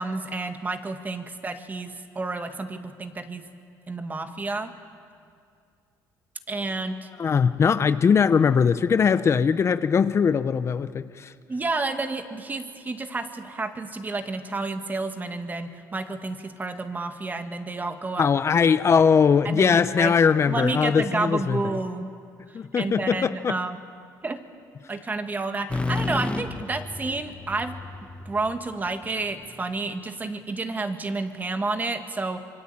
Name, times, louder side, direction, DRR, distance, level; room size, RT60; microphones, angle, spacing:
voice 1, 0.0-3.5 3.9-4.7 6.5-7.1 11.5-18.3 19.4-20.1 20.5-22.1 22.5-23.8 24.2-24.4 24.9-27.7 28.3-32.4, right 3 dB, 25° right, 7 dB, 2.0 m, -30 dB
voice 2, 7.2-11.3 18.2-21.6 22.5-23.6, left 6 dB, 35° left, 12 dB, 0.7 m, -21 dB
sound 1, 25.7-29.5, left 2 dB, 15° left, 1.1 m, -32 dB
26.5 x 23.5 x 8.7 m, 2.3 s
cardioid pair, 100°, 7 cm